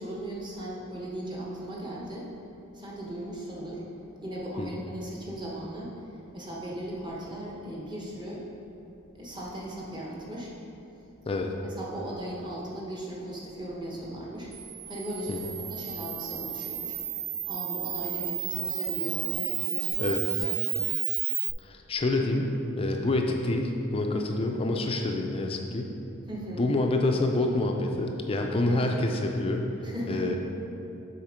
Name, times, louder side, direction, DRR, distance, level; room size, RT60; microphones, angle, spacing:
voice 1, 0.0-2.3 2.7-3.9 4.2-8.4 9.1-10.5 11.6-14.5 14.9-17.0 17.5-20.5 26.3-26.6 28.7-29.1 29.8-30.3, right 1 dB, 20° right, -4 dB, 1.1 m, -37 dB
Camera, 14.5-21.5, right 11 dB, 40° right, 0.4 m, -32 dB
voice 2, 21.6-26.0 26.5-29.7 30.1-30.3, left 2 dB, 25° left, 2 dB, 0.4 m, -27 dB
7.3 x 4.3 x 5.0 m, 2.9 s
head